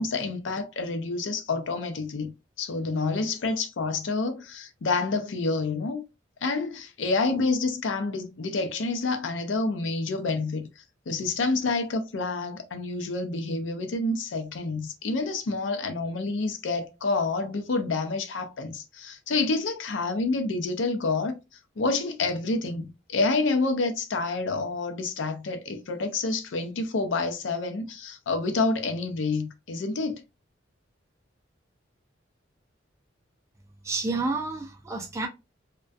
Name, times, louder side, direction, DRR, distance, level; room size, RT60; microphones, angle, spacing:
voice 1, 0.0-2.3 2.6-6.0 6.4-10.7 11.1-21.3 21.8-30.2, left 3 dB, 70° left, 0.5 m, -28 dB
voice 2, 33.8-35.3, right 3 dB, 15° right, 0.3 m, -29 dB
2.2 x 2.2 x 2.5 m
head